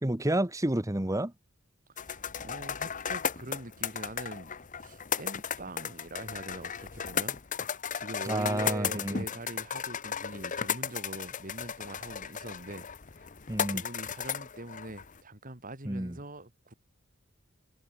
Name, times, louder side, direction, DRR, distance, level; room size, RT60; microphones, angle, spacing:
voice 1, 0.0-1.3 8.2-9.2 13.5-13.8 15.8-16.2, right 1 dB, 15° right, 1.3 m, -30 dB
sound 1, 2.0-15.2, left 7 dB, 40° left, 1.0 m, -35 dB
voice 2, 2.0-7.4 7.9-12.9 13.2-13.3 13.7-16.7, right 1 dB, 40° right, 4.1 m, -43 dB
head